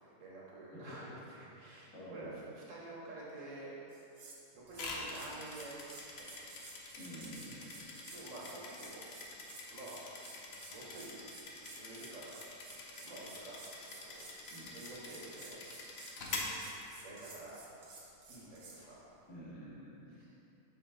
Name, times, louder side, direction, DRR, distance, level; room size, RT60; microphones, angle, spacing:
voice 1, 0.0-3.7 4.5-5.8 6.2-6.3 8.1-9.1 9.7-10.0 10.7-11.3 11.6-12.4 13.0-13.6 14.0-14.3 14.6-15.6 16.2-16.4 17.0-17.6 18.3-19.0 20.1-20.3, right 2 dB, 60° right, -6 dB, 1.6 m, -49 dB
voice 2, 0.7-1.1 1.9-2.4 7.0-7.7 14.5-14.7 19.3-20.2, equal, 80° left, -9 dB, 2.2 m, -49 dB
sound 1, 3.9-4.4 4.7-18.8, right 3 dB, 85° right, 1.5 m, -54 dB
sound 2, 4.7-17.4, left 2 dB, 55° left, 0.9 m, -46 dB
6.4 x 5.3 x 3.7 m, 2.8 s
omnidirectional pair, 1.5 m